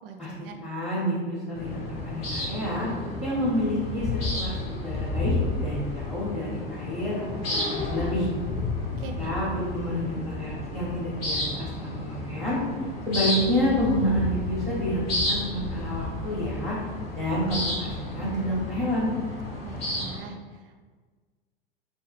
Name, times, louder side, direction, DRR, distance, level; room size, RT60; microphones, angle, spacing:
voice 1, 0.0-0.6 8.8-9.4 19.6-20.8, right 5 dB, 70° right, 5 dB, 0.4 m, -42 dB
voice 2, 0.6-2.9 3.2-5.4 5.6-8.3 9.2-12.6 13.1-16.8 17.1-19.1, equal, 5° right, -7 dB, 0.6 m, -29 dB
sound 1, 1.5-20.2, left 2 dB, 85° left, 0.9 m, -31 dB
2.8 x 2.1 x 3.2 m, 1.5 s
hypercardioid pair, 100°, 29 cm